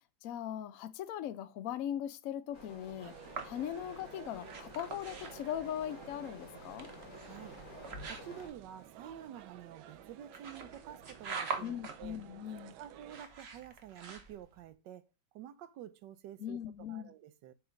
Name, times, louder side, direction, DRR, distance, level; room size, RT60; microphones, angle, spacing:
voice 1, 0.2-3.1 3.4-6.9 11.6-12.7 16.4-17.1, left 10 dB, 65° left, 0.8 m, -40 dB
sound 1, 2.5-8.5, left 1 dB, 50° left, 2.8 m, -51 dB
sound 2, 3.0-13.3, right 10 dB, 90° right, 1.4 m, -54 dB
sound 3, 3.2-14.7, right 5 dB, 45° right, 1.0 m, -46 dB
voice 2, 7.2-7.6 8.0-12.2 12.8-15.1 15.3-17.5, right 10 dB, 75° right, 1.2 m, -49 dB
7.1 x 3.6 x 5.0 m
omnidirectional pair, 2.1 m